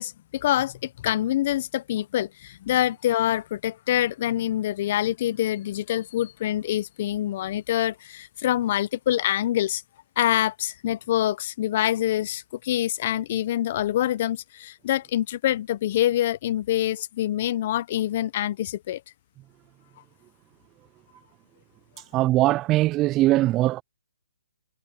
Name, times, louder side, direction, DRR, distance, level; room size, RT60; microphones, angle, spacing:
voice 1, 0.0-9.8 10.2-19.0, left 13 dB, 45° left, 0.7 m, -25 dB
voice 2, 22.1-23.8, right 16 dB, 20° right, 0.3 m, -21 dB
hypercardioid pair, 155°, 0 cm